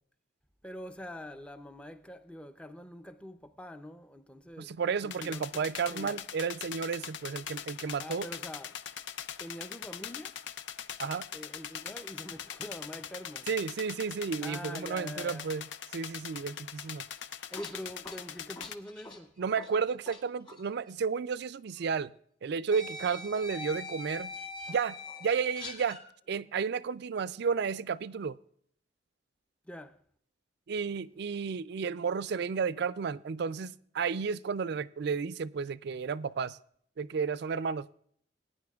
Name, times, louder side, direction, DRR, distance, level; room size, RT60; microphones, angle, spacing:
voice 1, 0.6-4.8 5.0-5.6 5.9-6.2 8.0-8.8 9.4-10.4 11.3-13.5 14.4-15.5 17.5-19.4 29.6-30.0, left 1 dB, 5° left, 0.5 m, -44 dB
voice 2, 4.6-8.3 11.0-11.3 13.5-15.6 15.9-17.0 19.4-22.1 22.4-24.3 24.7-26.0 26.3-28.4 30.7-36.6 37.0-38.0, right 5 dB, 60° right, 0.4 m, -32 dB
sound 1, 5.1-18.8, left 9 dB, 75° left, 0.5 m, -42 dB
sound 2, 17.2-20.2 20.5-20.7 21.8-21.9 22.7-26.0, left 2 dB, 25° left, 1.9 m, -43 dB
19.5 x 9.8 x 2.4 m
head